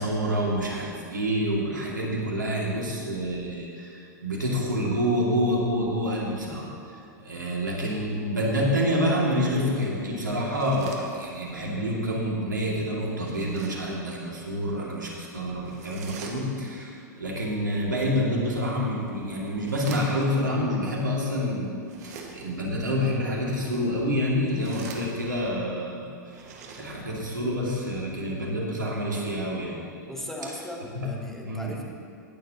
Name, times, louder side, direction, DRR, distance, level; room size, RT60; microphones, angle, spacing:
voice 1, 0.0-6.7 7.2-26.1 26.8-30.0 30.9-31.1 31.4-31.8, equal, 90° right, -3 dB, 2.2 m, -27 dB
sound 1, 10.4-11.6 13.1-14.0 15.6-16.8 18.6-20.5 21.8-22.7 24.3-25.5 26.2-27.3, right 4 dB, 60° right, 1.6 m, -45 dB
voice 2, 30.1-31.8, left 1 dB, 5° left, -1 dB, 1.8 m, -37 dB
21.0 x 7.2 x 2.9 m, 2.6 s
hypercardioid pair, 100°, 10 cm